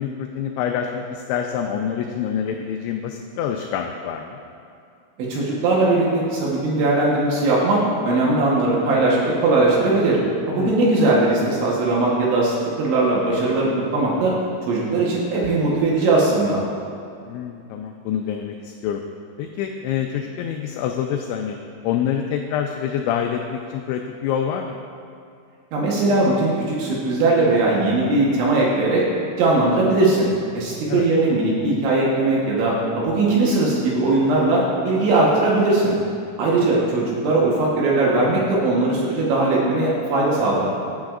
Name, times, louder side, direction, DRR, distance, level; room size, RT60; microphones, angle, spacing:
voice 1, 0.0-4.4 10.6-10.8 17.3-19.0 19.4-21.6 21.8-24.8 30.9-31.1 36.5-36.7, left 8 dB, 85° left, 3 dB, 2.6 m, -26 dB
voice 2, 5.3-10.2 10.5-14.3 14.6-16.6 25.7-29.0 29.4-30.3 30.5-35.9 36.4-40.7, right 2 dB, 75° right, -5 dB, 3.3 m, -19 dB
16.5 x 9.3 x 2.5 m, 2.5 s
omnidirectional pair, 5.7 m